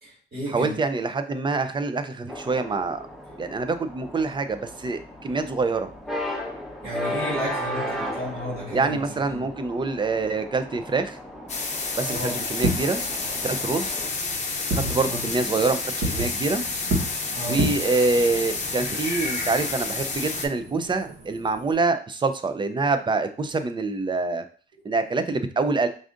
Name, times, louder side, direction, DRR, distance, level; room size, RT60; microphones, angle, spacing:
voice 1, 0.0-0.8 3.3-3.4 6.8-9.0 9.3-9.5 12.0-12.4 15.1-15.2 17.3-17.6, equal, 50° right, -6 dB, 1.8 m, -33 dB
voice 2, 0.5-3.0 3.4-5.9 8.7-11.2 12.0-13.0 13.4-13.9 14.7-15.8 16.1-16.6 17.5-24.4 24.8-25.9, right 3 dB, 25° right, 9 dB, 0.4 m, -25 dB
sound 1, 2.3-14.1, equal, ahead, 0.8 m, -35 dB
sound 2, 11.5-20.5, left 3 dB, 35° left, 0.7 m, -30 dB
Fireworks, 12.5-21.7, right 1 dB, 70° right, 1.2 m, -33 dB
4.7 x 2.6 x 2.5 m, 0.41 s
cardioid pair, 90°, 20 cm